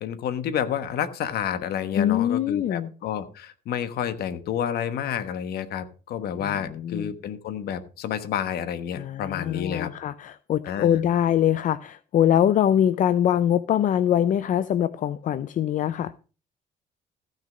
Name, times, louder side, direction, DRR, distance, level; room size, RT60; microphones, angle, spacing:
voice 1, 0.0-9.9 10.6-11.0, left 9 dB, 70° left, 1.3 m, -30 dB
voice 2, 2.0-2.9 6.4-7.1 8.9-16.1, left 10 dB, 50° left, 0.5 m, -23 dB
15.0 x 6.5 x 5.0 m
cardioid pair, 110°, 17 cm